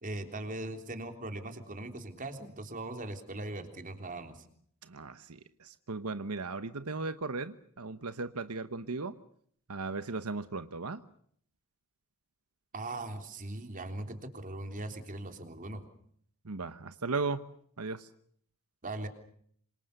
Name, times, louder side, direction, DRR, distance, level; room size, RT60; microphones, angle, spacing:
voice 1, 0.0-4.4 12.7-15.8 18.8-19.1, right 2 dB, 40° right, 6 dB, 3.6 m, -40 dB
voice 2, 4.8-9.2 9.7-11.0 16.4-18.1, right 3 dB, 85° right, 11 dB, 1.1 m, -37 dB
27.0 x 26.5 x 6.8 m, 0.64 s
head